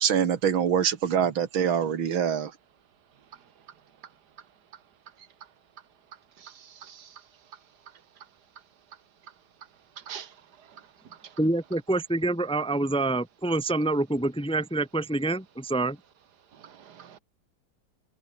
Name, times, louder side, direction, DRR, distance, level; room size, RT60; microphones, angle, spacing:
voice 1, 0.0-2.5, right 8 dB, 90° right, 2.5 m, -24 dB
voice 2, 6.4-7.2 10.0-10.3 10.7-10.8 11.2-11.3 16.5-17.2, right 8 dB, 55° right, 1.9 m, -45 dB
voice 3, 11.4-16.0, right 2 dB, 5° left, 1.0 m, -26 dB
omnidirectional pair, 2.1 m